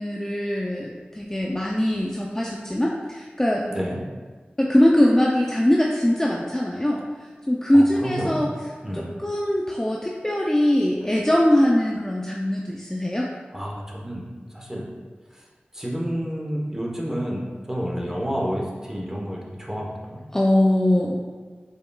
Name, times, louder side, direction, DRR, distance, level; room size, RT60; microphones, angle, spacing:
voice 1, 0.0-3.7 4.6-7.0 7.5-8.5 8.9-13.3 20.3-21.2, left 1 dB, 15° left, -2 dB, 0.5 m, -21 dB
voice 2, 3.7-4.0 7.7-8.4 8.8-9.1 13.5-14.2 14.5-14.9 15.3-15.5 15.7-20.2, equal, 15° right, -3 dB, 1.1 m, -30 dB
5.4 x 4.0 x 2.3 m, 1.4 s
wide cardioid pair, 45°, 4 cm